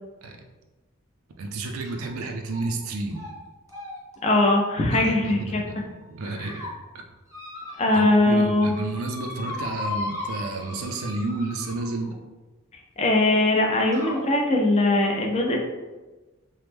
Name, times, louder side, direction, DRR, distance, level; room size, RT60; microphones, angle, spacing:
voice 1, 1.4-3.2 4.9-7.0 7.9-12.2, right 2 dB, 85° right, 3 dB, 0.4 m, -31 dB
sound 1, 1.8-2.1 2.5-2.8 3.1-3.3 3.7-5.6 6.1-6.7 7.3-8.3 8.5-12.1 13.1-13.2 13.9-14.3, left 2 dB, 15° right, 0.6 m, -37 dB
voice 2, 4.2-5.6 6.4-6.5 7.8-8.7 13.0-15.6, left 2 dB, 30° left, 1 dB, 0.5 m, -21 dB
3.0 x 2.0 x 3.3 m, 1.2 s
head